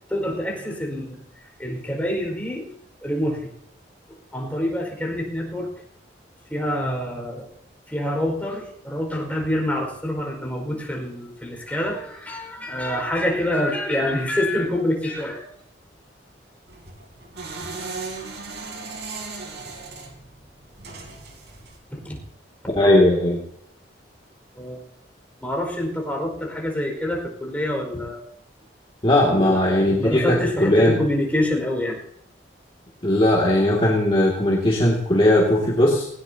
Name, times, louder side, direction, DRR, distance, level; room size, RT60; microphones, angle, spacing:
voice 1, 0.1-2.7 3.0-3.5 4.3-5.7 6.5-7.5 7.9-15.4 21.9-22.2 24.5-24.8 25.4-28.2 29.3-29.6 29.9-32.0, left 1 dB, 10° left, 0 dB, 5.0 m, -26 dB
sound 1, 16.7-21.8, right 4 dB, 70° right, 3.5 m, -37 dB
voice 2, 22.8-23.4 29.0-31.0 33.0-36.1, left 1 dB, 30° left, -4 dB, 2.4 m, -18 dB
19.0 x 18.5 x 2.9 m, 0.69 s
head